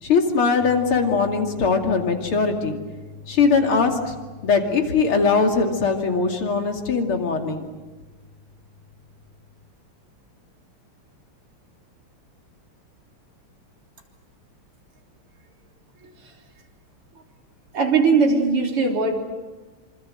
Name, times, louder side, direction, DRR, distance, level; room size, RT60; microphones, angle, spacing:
voice 1, 0.0-2.8 3.3-4.1 4.4-7.7, left 5 dB, 75° left, 4 dB, 3.4 m, -21 dB
sound 1, 0.6-9.7, left 3 dB, 15° left, 6.7 m, -44 dB
voice 2, 17.7-19.1, right 4 dB, 90° right, 2 dB, 4.4 m, -19 dB
26.5 x 26.0 x 7.8 m, 1.2 s
omnidirectional pair, 2.4 m